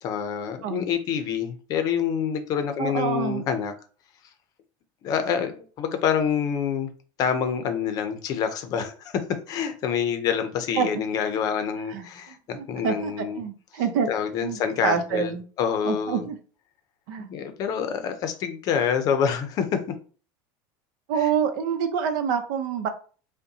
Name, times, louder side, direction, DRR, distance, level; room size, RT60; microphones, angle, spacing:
voice 1, 0.0-3.7 5.0-6.9 7.2-9.1 9.5-13.4 14.1-16.3 17.2-19.8 21.2-21.3, left 7 dB, 35° left, 0.6 m, -27 dB
voice 2, 2.8-3.4 10.7-10.9 11.9-12.1 12.5-14.1 14.4-15.4 15.8-16.4 17.1-17.3 21.1-22.9, right 7 dB, 75° right, 0.7 m, -26 dB
5.3 x 2.2 x 2.7 m
cardioid pair, 165°, 11 cm